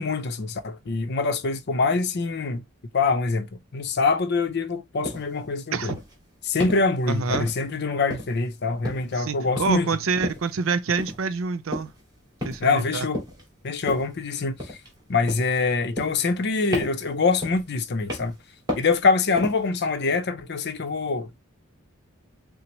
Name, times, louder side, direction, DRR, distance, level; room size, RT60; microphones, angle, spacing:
voice 1, 0.0-2.6 2.9-3.5 3.7-5.9 6.4-9.9 12.6-13.2 13.6-14.8 15.1-18.4 18.8-21.4, left 4 dB, 55° left, 0.6 m, -24 dB
sound 1, 5.0-5.3 5.9-6.1 6.6-6.9 7.3-7.7 8.1-8.5 8.8-9.2 9.6-9.9 10.2-10.5 11.0-11.2 11.7-12.0 12.4-12.8 13.1-13.4 13.9-14.2 14.6-15.0 15.3-15.6 16.0-16.4 16.7-17.1 17.4-17.7 18.1-18.4 18.7-19.0 19.4-19.7, left 1 dB, 20° right, 2.1 m, -33 dB
voice 2, 7.1-7.5 9.1-11.9 12.4-13.1, right 5 dB, 85° right, 0.6 m, -27 dB
5.9 x 2.0 x 3.0 m
head